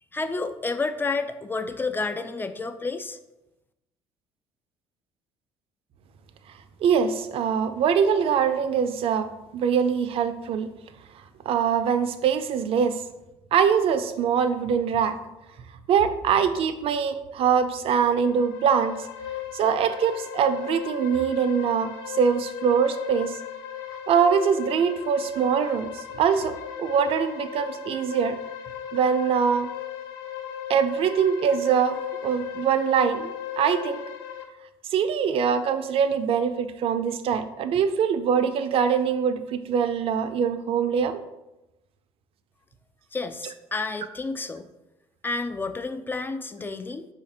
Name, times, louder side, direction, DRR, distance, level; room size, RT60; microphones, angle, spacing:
voice 1, 0.1-3.2 43.1-44.7 45.2-47.1, left 3 dB, 20° left, 10 dB, 0.4 m, -30 dB
voice 2, 6.8-10.7 11.5-13.0 13.5-15.2 15.9-19.0 19.5-23.4 24.1-28.4 28.9-29.7 30.7-33.3 33.6-34.0 34.9-41.2, right 7 dB, 55° right, 10 dB, 0.5 m, -23 dB
sound 1, 18.1-34.4, left 10 dB, 90° left, 0.5 m, -37 dB
5.1 x 2.4 x 4.2 m, 0.96 s
supercardioid pair, 75°, 11 cm